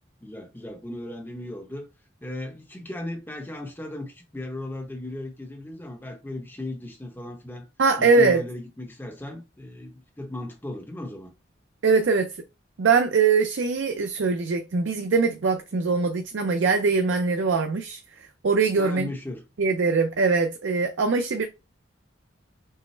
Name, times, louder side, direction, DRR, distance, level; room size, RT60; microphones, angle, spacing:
voice 1, 0.2-1.9 2.2-7.7 8.0-11.3 18.8-19.4, left 1 dB, 10° left, 0.8 m, -36 dB
voice 2, 7.8-8.4 11.8-12.3 12.8-18.0 18.4-19.1 19.6-21.5, right 4 dB, 75° right, 0.5 m, -22 dB
5.4 x 2.1 x 3.2 m
head